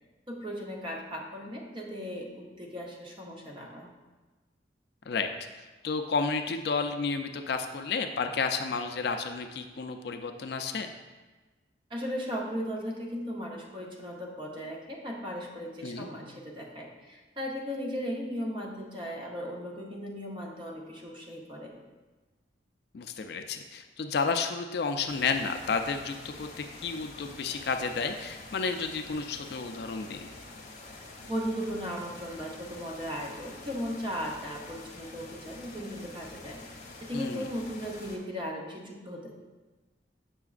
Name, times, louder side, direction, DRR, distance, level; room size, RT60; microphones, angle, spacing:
voice 1, 0.3-3.9 11.9-21.7 31.3-39.3, equal, 25° right, -1 dB, 0.7 m, -37 dB
voice 2, 5.8-10.9 15.8-16.1 22.9-30.3 37.1-37.4, left 4 dB, 55° left, 6 dB, 0.3 m, -31 dB
sound 1, 25.1-38.2, left 2 dB, 40° left, 0.8 m, -47 dB
6.8 x 5.7 x 2.4 m, 1.2 s
head